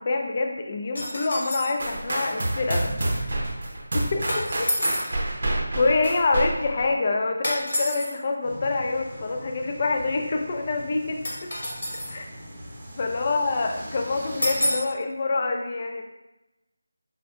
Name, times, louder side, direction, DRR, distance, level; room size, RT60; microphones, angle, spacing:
voice 1, 0.0-3.3 3.9-4.7 5.7-11.5 12.1-12.3 13.0-16.0, left 3 dB, 35° left, 3 dB, 0.3 m, -26 dB
sound 1, 0.9-1.8 4.3-5.1 7.4-8.1 11.2-12.2 14.4-14.9, equal, 80° left, 1.3 m, -28 dB
sound 2, 1.8-6.9, right 1 dB, 60° right, 0.6 m, -28 dB
sound 3, 8.4-14.7, equal, 25° right, 0.7 m, -42 dB
5.0 x 2.1 x 2.4 m, 0.97 s
figure-of-eight pair, 165°, 0 cm